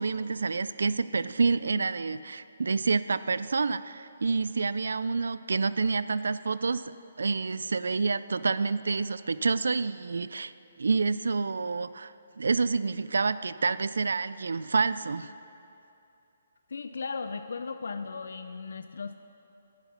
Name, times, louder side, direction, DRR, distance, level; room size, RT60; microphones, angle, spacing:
voice 1, 0.0-10.5 10.8-15.3, right 4 dB, 90° right, 15 dB, 0.3 m, -28 dB
voice 2, 16.7-19.2, left 4 dB, 65° left, 9 dB, 0.4 m, -36 dB
11.0 x 9.7 x 5.8 m, 2.7 s
hypercardioid pair, 175°, 0 cm